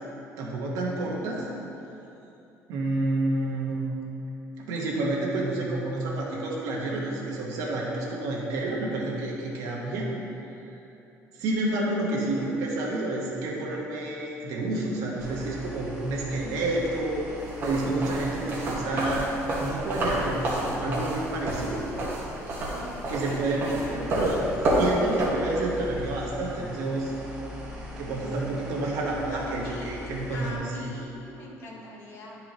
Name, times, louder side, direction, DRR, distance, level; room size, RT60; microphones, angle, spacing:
voice 1, 0.4-1.5 2.7-3.9 4.6-10.1 11.3-17.3 17.6-19.3 19.6-21.8 23.1-24.4 24.7-27.1 28.0-30.5 30.8-30.9, right 2 dB, 80° right, -3 dB, 1.4 m, -29 dB
sound 1, 15.2-30.6, left 1 dB, 10° right, 1.1 m, -41 dB
sound 2, 17.5-25.3, right 1 dB, 40° right, 1.5 m, -29 dB
voice 2, 22.6-24.1 28.2-28.4 29.3-32.4, left 1 dB, 45° left, -3 dB, 1.3 m, -42 dB
10.5 x 4.7 x 3.1 m, 2.9 s
cardioid pair, 165°, 6 cm